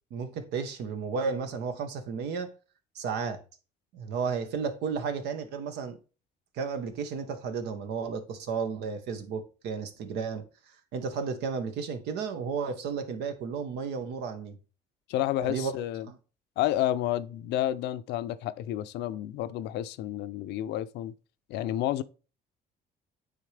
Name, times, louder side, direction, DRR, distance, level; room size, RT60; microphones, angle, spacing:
voice 1, 0.1-2.5 2.9-3.4 3.9-6.0 6.5-10.5 10.9-14.6 15.4-15.7 16.1-16.2, right 5 dB, 80° right, 1.1 m, -33 dB
voice 2, 15.1-16.1 16.6-21.1 21.5-22.0, left 13 dB, 85° left, 0.5 m, -30 dB
9.4 x 3.6 x 3.3 m
cardioid pair, 110°, 17 cm